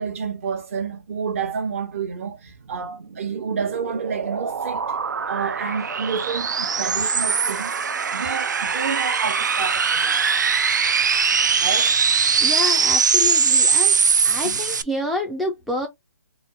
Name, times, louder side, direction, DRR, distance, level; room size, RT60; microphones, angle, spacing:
voice 1, 0.0-4.8 5.3-7.7 8.1-10.2 11.6-11.9 14.4-14.6, right 6 dB, 45° right, 1.0 m, -29 dB
sound 1, 3.0-14.8, right 6 dB, 75° right, 0.5 m, -21 dB
voice 2, 12.4-14.0 14.2-15.9, left 1 dB, ahead, 0.4 m, -28 dB
4.1 x 2.0 x 3.8 m
hypercardioid pair, 150°, 10 cm